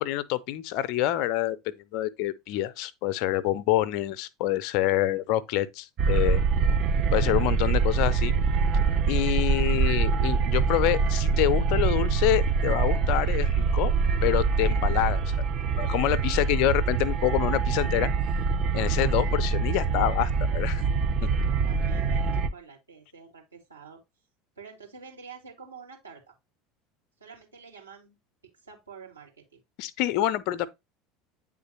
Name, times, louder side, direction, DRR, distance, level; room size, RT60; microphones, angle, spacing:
voice 1, 0.0-6.4 7.1-8.3 9.1-13.9 14.2-15.2 15.8-18.1 18.7-20.8 21.2-21.3 29.8-30.7, left 14 dB, 55° left, 0.6 m, -27 dB
sound 1, 6.0-22.5, right 5 dB, 45° right, 0.8 m, -24 dB
voice 2, 21.4-24.0 24.6-26.3 27.2-28.2 28.6-29.6, right 6 dB, 85° right, 2.6 m, -48 dB
9.3 x 3.8 x 2.9 m
figure-of-eight pair, 70°, 0 cm